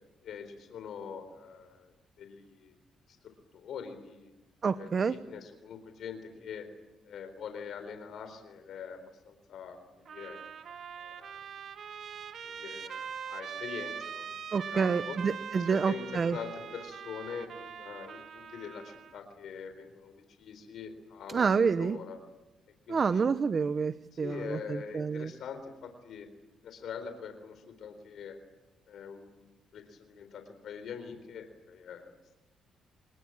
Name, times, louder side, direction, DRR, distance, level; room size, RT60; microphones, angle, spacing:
voice 1, 0.2-2.7 3.5-4.3 4.8-6.7 7.0-10.4 11.0-11.4 12.4-15.2 15.6-21.4 21.8-22.2 22.9-23.4 24.2-26.3 26.6-28.4 28.9-29.5 29.7-32.4, left 6 dB, 70° left, 8 dB, 3.9 m, -44 dB
voice 2, 4.6-5.2 14.5-16.4 21.3-22.0 22.9-25.3, right 5 dB, 40° right, 13 dB, 0.9 m, -28 dB
Trumpet, 10.1-19.2, right 7 dB, 60° right, 1.9 m, -42 dB
27.0 x 20.5 x 8.7 m, 1.1 s
cardioid pair, 90°, 0 cm